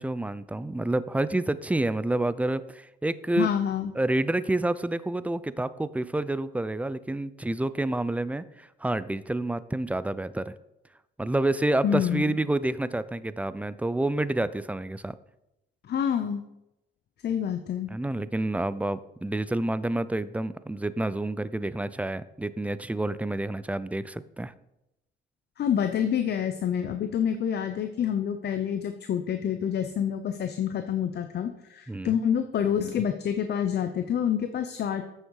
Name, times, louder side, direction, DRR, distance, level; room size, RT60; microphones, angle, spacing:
voice 1, 0.0-3.5 4.0-10.5 11.2-15.2 17.9-24.5 31.9-32.2, right 2 dB, 5° right, 16 dB, 0.4 m, -28 dB
voice 2, 3.4-3.9 11.8-12.4 15.8-16.4 17.2-17.9 25.6-35.0, left 8 dB, 55° left, 8 dB, 0.7 m, -27 dB
9.0 x 6.5 x 4.7 m, 0.89 s
cardioid pair, 90°, 20 cm